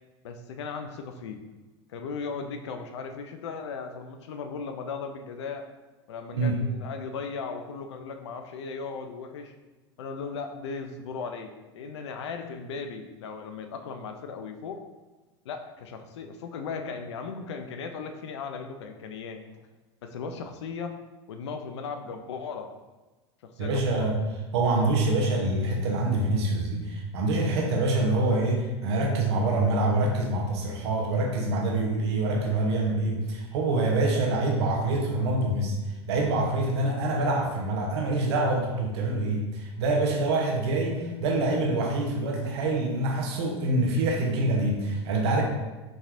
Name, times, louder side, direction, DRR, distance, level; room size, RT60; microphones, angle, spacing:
voice 1, 0.2-1.4 1.9-5.6 6.1-9.5 10.0-14.8 15.4-19.4 20.0-20.9 21.3-22.7 23.4-24.1, left 5 dB, 80° left, 6 dB, 0.5 m, -37 dB
voice 2, 23.6-24.2 24.5-35.8 36.1-45.4, right 2 dB, 70° right, 0 dB, 0.9 m, -25 dB
6.0 x 3.3 x 2.5 m, 1.2 s
hypercardioid pair, 100°, 14 cm